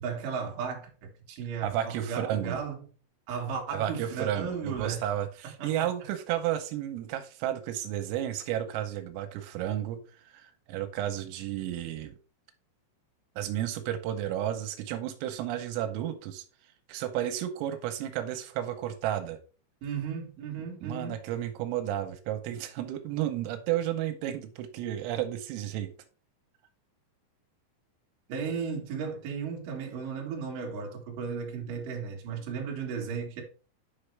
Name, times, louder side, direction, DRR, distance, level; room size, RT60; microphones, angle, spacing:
voice 1, 0.0-2.9 3.3-5.0 5.6-5.9 19.8-21.2 28.3-33.4, right 6 dB, 55° right, 2.7 m, -35 dB
voice 2, 1.6-2.6 3.7-12.1 13.4-16.4 16.9-19.4 20.8-25.9, right 11 dB, 85° right, 3.5 m, -32 dB
9.4 x 5.7 x 3.3 m
omnidirectional pair, 5.8 m